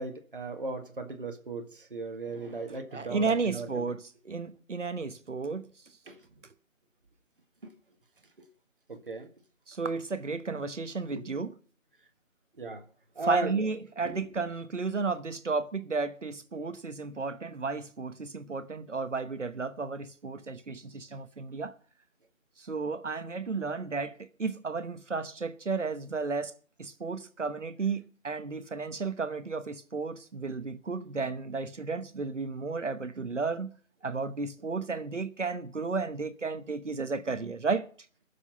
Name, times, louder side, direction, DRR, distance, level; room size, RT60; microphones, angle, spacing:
voice 1, 0.0-3.9 6.1-6.2 7.6-7.7 8.4-8.5 8.9-9.3 11.1-11.2 12.6-12.9 13.2-13.7 14.1-14.5, right 3 dB, 40° right, 1.8 m, -36 dB
voice 2, 2.9-5.7 9.7-11.5 13.3-21.7 22.6-33.7 34.0-37.9, right 4 dB, 60° right, 1.2 m, -33 dB
19.5 x 7.3 x 5.6 m
figure-of-eight pair, 175°, 41 cm